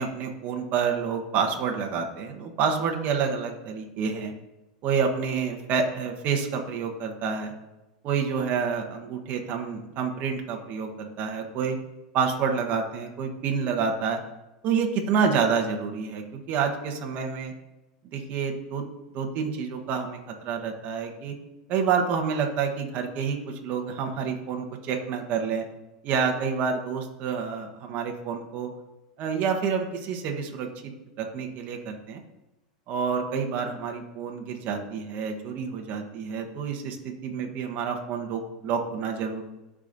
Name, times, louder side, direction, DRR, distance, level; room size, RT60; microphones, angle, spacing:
voice 1, 0.0-4.3 4.8-7.5 8.0-11.8 12.1-14.2 14.6-17.5 18.1-18.8 19.1-21.3 21.7-25.6 26.0-28.7 29.2-30.9 31.2-32.2 32.9-39.4, right 6 dB, 45° right, 2 dB, 1.1 m, -28 dB
13.5 x 5.0 x 2.6 m, 1.0 s
hypercardioid pair, 105°, 4 cm